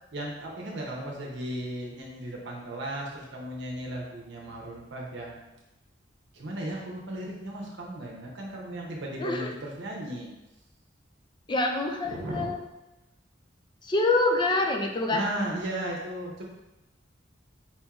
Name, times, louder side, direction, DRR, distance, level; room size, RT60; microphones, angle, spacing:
voice 1, 0.1-5.4 6.3-10.3 12.0-12.5 15.1-16.5, right 1 dB, 70° right, -2 dB, 0.8 m, -35 dB
voice 2, 9.2-9.5 11.5-12.6 13.8-15.2, left 2 dB, 25° left, 3 dB, 0.4 m, -26 dB
4.3 x 4.3 x 2.4 m, 0.97 s
head